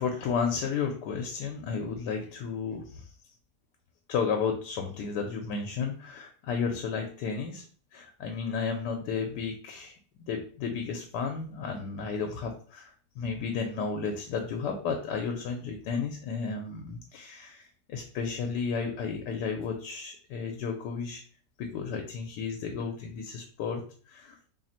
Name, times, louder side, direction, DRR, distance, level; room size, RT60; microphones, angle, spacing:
voice 1, 0.0-3.0 4.1-7.6 7.9-10.0 10.3-21.2 21.6-23.8 24.1-24.4, left 5 dB, 80° left, 4 dB, 1.2 m, -33 dB
3.1 x 2.4 x 4.1 m, 0.43 s
omnidirectional pair, 1.8 m